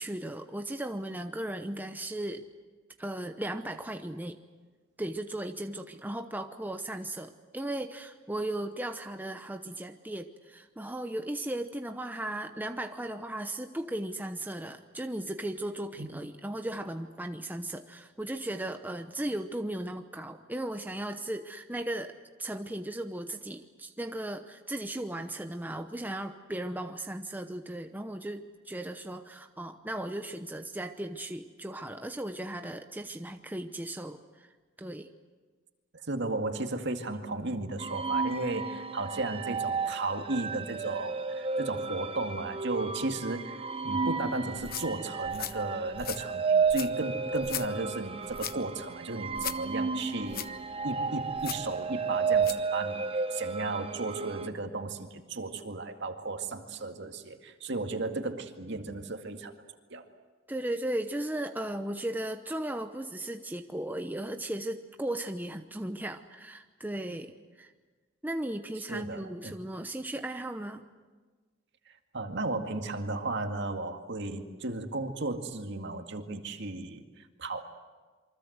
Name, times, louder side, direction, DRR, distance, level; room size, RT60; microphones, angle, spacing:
voice 1, 0.0-2.4 3.0-4.4 5.0-34.5 34.8-35.1 60.5-67.7 68.2-70.8, right 1 dB, 10° right, 6 dB, 0.8 m, -36 dB
voice 2, 36.1-50.5 50.8-59.5 59.9-60.0 68.9-69.5 72.1-77.7, right 2 dB, 60° right, 5 dB, 2.1 m, -35 dB
sound 1, 37.8-54.5, right 5 dB, 30° right, 1.1 m, -32 dB
sound 2, 44.5-52.7, left 10 dB, 45° left, 0.9 m, -41 dB
27.5 x 24.5 x 8.0 m, 1.4 s
head